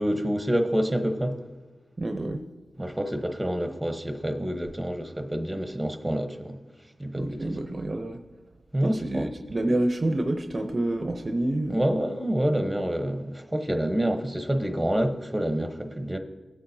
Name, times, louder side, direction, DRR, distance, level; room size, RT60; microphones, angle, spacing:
voice 1, 0.0-1.4 2.8-6.6 7.0-7.6 8.7-9.3 11.7-16.2, equal, 10° right, 1.0 m, -27 dB
voice 2, 2.0-2.4 7.2-8.2 8.8-11.8, right 1 dB, 40° right, 0.7 m, -28 dB
19.0 x 8.6 x 2.8 m
cardioid pair, 70°, 0 cm